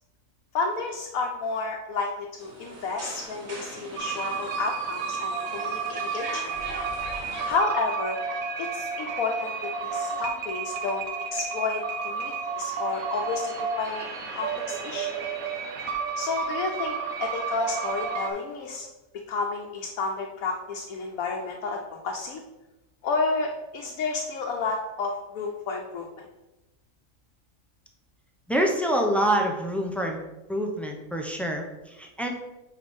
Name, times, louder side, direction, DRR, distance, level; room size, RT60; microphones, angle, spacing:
voice 1, 0.5-6.6 7.5-8.2 8.6-9.5 9.8-11.0 11.3-14.1 14.3-15.1 16.2-18.9 19.3-22.4 23.0-26.3, left 4 dB, 80° left, 0 dB, 1.2 m, -31 dB
sound 1, 2.4-7.6, right 2 dB, 50° right, 1.7 m, -40 dB
sound 2, 4.0-18.3, right 5 dB, 80° right, 1.3 m, -31 dB
voice 2, 28.5-30.2 30.5-32.3, right 1 dB, ahead, 1 dB, 0.4 m, -26 dB
5.1 x 4.7 x 5.3 m, 1.0 s
omnidirectional pair, 1.4 m